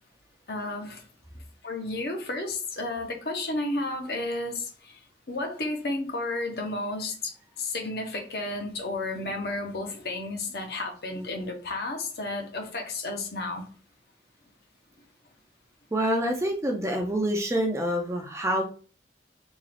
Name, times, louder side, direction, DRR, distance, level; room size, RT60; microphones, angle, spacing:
voice 1, 0.5-1.0 1.6-5.0 5.3-13.6, left 2 dB, 60° left, 2 dB, 0.8 m, -32 dB
voice 2, 15.9-18.6, equal, 15° right, 1 dB, 0.4 m, -26 dB
3.6 x 2.3 x 3.3 m, 0.40 s
head